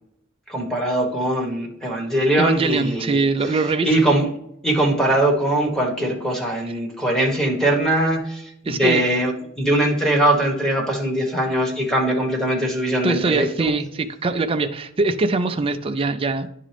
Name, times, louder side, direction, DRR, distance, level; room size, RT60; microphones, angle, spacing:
voice 1, 0.5-4.3 4.6-9.3 9.6-13.7, right 1 dB, 5° left, -2 dB, 1.3 m, -21 dB
voice 2, 2.4-3.9 8.7-9.0 13.0-16.5, right 3 dB, 25° right, 6 dB, 0.4 m, -22 dB
10.0 x 3.7 x 3.4 m, 0.75 s
head